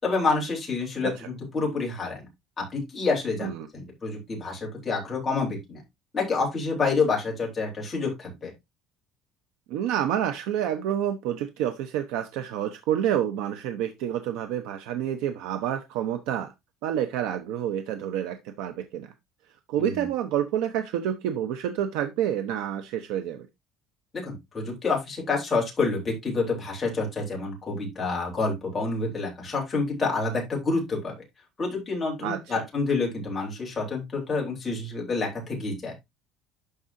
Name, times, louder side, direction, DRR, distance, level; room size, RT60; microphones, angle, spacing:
voice 1, 0.0-2.3 2.7-5.8 6.1-8.5 19.8-19.9 24.1-31.1 31.6-35.9, left 3 dB, 15° left, 3.8 m, -28 dB
voice 2, 9.7-16.5 16.8-19.1 19.7-23.5 32.2-32.6, right 10 dB, 90° right, 0.9 m, -28 dB
12.0 x 5.0 x 2.7 m
cardioid pair, 175°, 0 cm